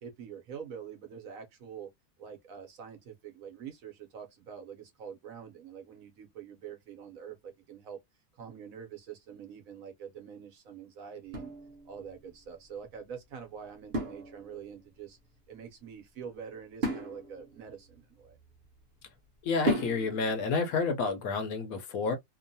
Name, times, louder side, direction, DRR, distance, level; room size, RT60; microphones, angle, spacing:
voice 1, 0.0-1.9 2.2-8.0 8.3-11.5 11.8-15.2 15.5-18.4, right 7 dB, 65° right, 1.1 m, -45 dB
sound 1, 11.3-12.3 13.9-14.8 16.8-18.8 19.7-20.4, right 1 dB, 45° right, 0.9 m, -35 dB
voice 2, 19.4-22.2, left 4 dB, 70° left, 1.0 m, -30 dB
3.0 x 2.1 x 2.6 m
omnidirectional pair, 1.7 m